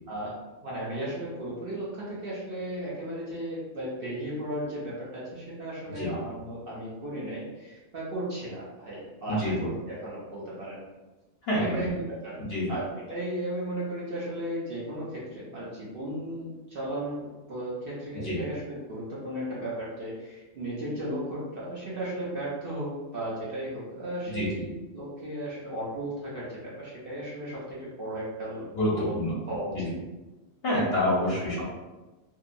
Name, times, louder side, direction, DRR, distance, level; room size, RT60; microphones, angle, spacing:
voice 1, 0.6-10.8 11.6-12.4 12.7-29.2 29.5-29.9 31.2-31.6, right 1 dB, 55° right, -7 dB, 0.7 m, -35 dB
voice 2, 9.3-9.7 11.5-11.9 12.5-12.8 18.1-18.4 24.3-24.6 28.7-29.3 29.7-29.9 30.6-31.6, left 1 dB, 55° left, -6 dB, 0.9 m, -27 dB
2.7 x 2.2 x 2.5 m, 1.1 s
omnidirectional pair, 1.3 m